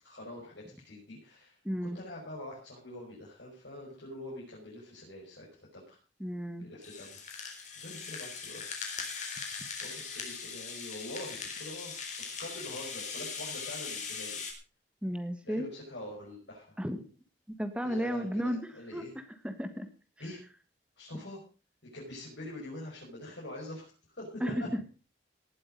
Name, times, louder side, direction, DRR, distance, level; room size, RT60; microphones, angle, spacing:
voice 1, 0.0-6.0 6.6-8.7 9.8-14.4 15.4-16.7 17.8-19.1 20.2-20.4 21.0-21.4 21.9-24.7, left 1 dB, 80° left, -5 dB, 6.0 m, -45 dB
voice 2, 1.6-2.0 6.2-6.7 15.0-15.7 16.8-17.0 17.6-19.0 19.4-19.9 24.4-24.8, equal, 5° right, 8 dB, 1.3 m, -33 dB
Rattle (instrument), 6.8-14.5, left 5 dB, 40° left, 3.7 m, -40 dB
18.5 x 8.4 x 5.2 m, 0.35 s
head